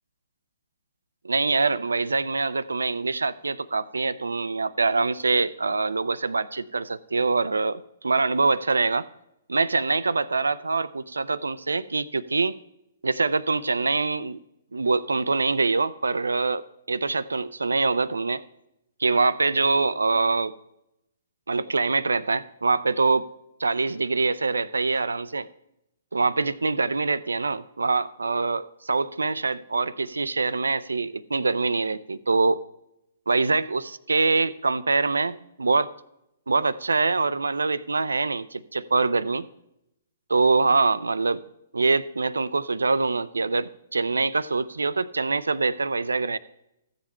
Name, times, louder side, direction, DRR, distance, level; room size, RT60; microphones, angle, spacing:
voice 1, 1.2-9.1 9.5-12.5 13.0-14.4 14.7-18.4 19.0-20.5 21.5-23.3 23.6-25.5 26.1-32.6 33.3-35.9 36.5-39.5 40.3-41.4 41.7-46.4, right 3 dB, 75° right, 18 dB, 0.4 m, -24 dB
14.0 x 7.7 x 4.3 m, 0.85 s
figure-of-eight pair, 120°, 0 cm